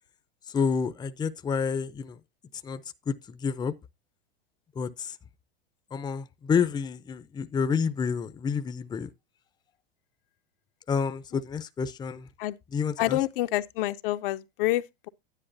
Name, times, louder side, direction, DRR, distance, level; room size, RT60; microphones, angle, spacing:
voice 1, 0.5-2.2 2.6-2.8 3.1-3.7 4.8-5.1 5.9-9.1 10.9-12.3 12.7-13.2, left 6 dB, 15° left, 0.6 m, -29 dB
voice 2, 13.0-15.1, left 16 dB, 60° left, 0.7 m, -28 dB
10.0 x 9.7 x 2.6 m
hypercardioid pair, 110°, 31 cm